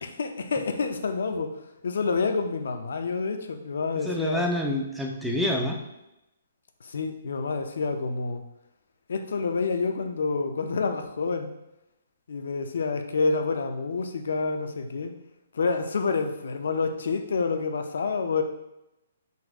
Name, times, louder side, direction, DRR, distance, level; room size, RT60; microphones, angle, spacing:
voice 1, 0.2-1.5 1.8-4.5 6.8-8.4 9.1-11.5 12.3-15.1 15.5-18.4, left 4 dB, 75° left, 6 dB, 0.6 m, -28 dB
voice 2, 4.0-5.8, left 1 dB, ahead, -1 dB, 0.5 m, -27 dB
4.1 x 2.6 x 4.6 m, 0.90 s
hypercardioid pair, 165°, 0 cm